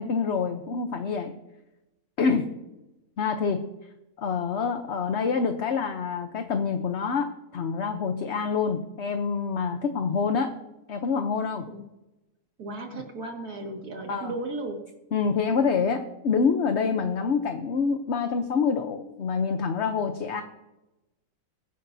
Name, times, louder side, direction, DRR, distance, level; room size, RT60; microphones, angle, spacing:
voice 1, 0.0-1.3 2.2-2.5 3.2-3.7 4.2-10.5 10.9-11.7 12.9-13.0 14.1-14.3 15.1-20.4, left 5 dB, 55° left, 6 dB, 1.0 m, -26 dB
voice 2, 12.6-14.9, right 2 dB, 90° right, 2 dB, 2.5 m, -35 dB
21.5 x 10.0 x 2.7 m, 0.97 s
omnidirectional pair, 1.6 m